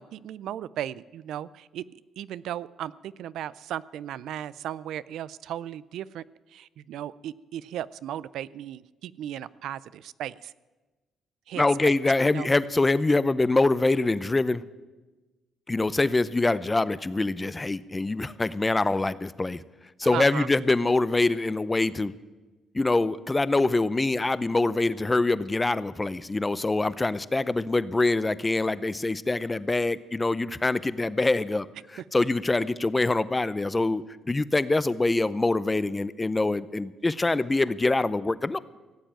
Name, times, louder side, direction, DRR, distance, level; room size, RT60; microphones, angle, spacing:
voice 1, 0.0-1.8 2.2-6.2 6.5-10.5 11.5-12.0 12.3-12.5 20.0-20.5 32.0-32.1, right 11 dB, 80° right, 19 dB, 0.4 m, -36 dB
voice 2, 11.6-14.6 15.7-19.6 20.0-22.1 22.7-31.7 32.1-38.6, left 2 dB, 20° left, 17 dB, 0.6 m, -24 dB
16.5 x 7.9 x 8.8 m, 1.2 s
cardioid pair, 90°, 0 cm